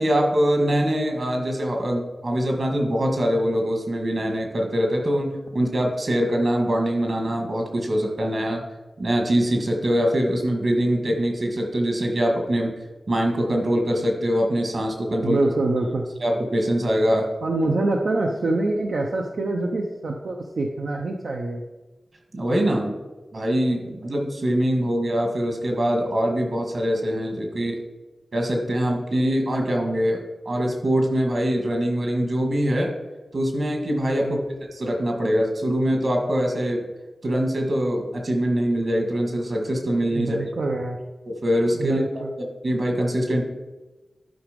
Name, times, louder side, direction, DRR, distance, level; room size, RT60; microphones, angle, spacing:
voice 1, 0.0-8.6 9.0-12.7 13.1-15.4 16.2-17.3 22.3-23.0 23.3-27.8 28.3-32.9 33.3-34.4 34.7-36.8 37.2-40.5 41.2-42.0 42.4-43.4, equal, 55° right, 2 dB, 2.0 m, -23 dB
voice 2, 15.2-16.1 17.4-21.6 34.2-34.4 40.1-41.0 41.8-42.3, right 2 dB, 80° right, 0 dB, 0.7 m, -25 dB
11.5 x 5.0 x 5.2 m, 1.1 s
wide cardioid pair, 105°, 0 cm